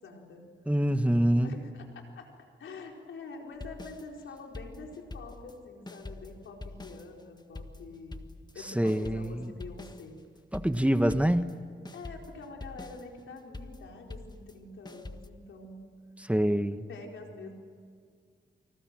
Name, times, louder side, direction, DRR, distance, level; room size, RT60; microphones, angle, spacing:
voice 1, 0.0-0.4 0.8-1.1 1.4-2.3 2.6-8.2 8.5-10.2 10.8-10.9 11.9-16.0 16.9-17.5, left 3 dB, 90° left, 1 dB, 4.5 m, -46 dB
voice 2, 0.7-1.6 8.7-9.4 10.5-11.5 16.3-16.8, equal, 5° right, 9 dB, 1.3 m, -25 dB
sound 1, 3.6-5.6 5.9-11.6 11.8-15.3, left 2 dB, 20° left, 1.7 m, -45 dB
29.5 x 26.0 x 7.7 m, 2.1 s
cardioid pair, 75°, 20 cm